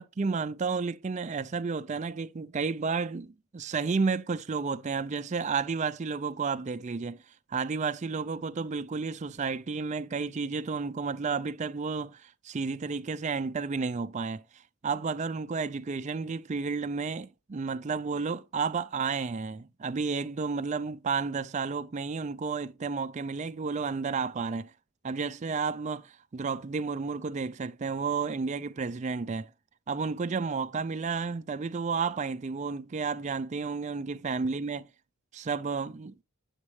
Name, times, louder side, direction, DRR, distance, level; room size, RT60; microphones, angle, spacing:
voice 1, 0.0-7.2 7.5-24.7 25.0-29.5 29.9-34.9 35.3-36.2, right 5 dB, 30° right, 0.4 m, -32 dB
9.5 x 7.2 x 3.2 m
head